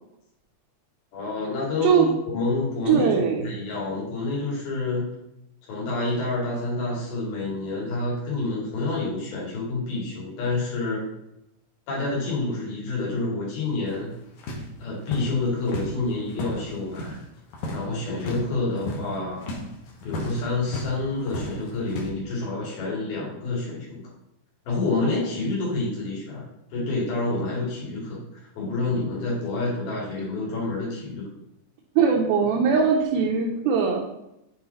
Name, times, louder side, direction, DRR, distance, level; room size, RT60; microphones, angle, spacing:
voice 1, 1.1-5.1 5.7-11.0 11.9-14.1 14.8-17.2 17.7-19.5 20.0-24.0 24.7-31.3, left 3 dB, 85° left, -5 dB, 4.3 m, -28 dB
voice 2, 2.9-3.6 32.0-34.0, right 6 dB, 85° right, -2 dB, 2.7 m, -21 dB
sound 1, 13.9-17.2 17.5-17.9 18.1-18.5 18.8-21.0 21.2-22.1, left 1 dB, 65° left, 2.4 m, -34 dB
8.1 x 4.8 x 4.0 m, 0.85 s
omnidirectional pair, 4.2 m